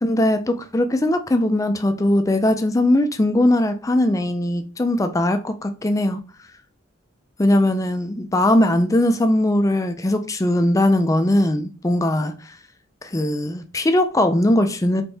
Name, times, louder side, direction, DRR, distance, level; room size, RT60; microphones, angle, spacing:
voice 1, 0.0-6.2 7.4-12.3 13.0-15.0, left 1 dB, 15° left, 0.4 m, -20 dB
4.4 x 3.3 x 3.3 m
head